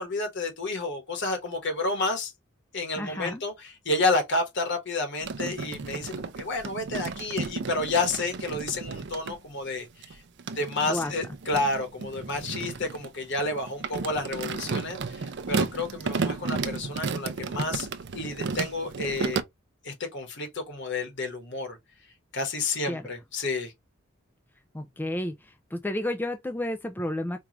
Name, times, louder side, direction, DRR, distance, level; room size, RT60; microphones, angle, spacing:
voice 1, 0.0-2.3 2.7-10.2 10.5-17.9 18.1-19.4 19.8-21.8 22.3-23.7, left 2 dB, 60° left, 1.4 m, -30 dB
voice 2, 3.0-3.4 10.9-11.1 22.9-23.0 24.7-25.3 25.7-27.4, left 1 dB, 10° left, 0.3 m, -31 dB
sound 1, 5.2-9.4 10.0-19.4, right 4 dB, 55° right, 0.5 m, -33 dB
4.6 x 2.4 x 2.9 m
head